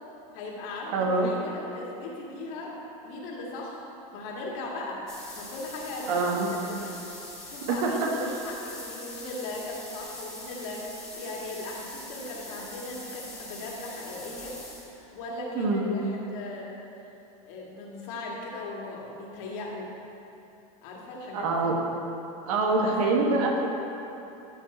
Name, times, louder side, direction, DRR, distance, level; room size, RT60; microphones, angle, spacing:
voice 1, 0.3-2.8 3.0-3.8 4.1-5.0 5.3-6.9 7.5-14.6 15.1-16.7 17.4-19.9 20.8-21.7 22.7-23.1, left 2 dB, 65° left, -2 dB, 2.1 m, -38 dB
voice 2, 0.9-1.3 6.1-6.5 7.7-8.1 15.5-15.9 21.3-21.7 22.4-23.7, right 3 dB, 75° right, 0 dB, 1.6 m, -25 dB
sound 1, 5.1-15.1, left 1 dB, 5° left, 2.0 m, -43 dB
14.0 x 5.2 x 4.4 m, 2.9 s
supercardioid pair, 135°, 19 cm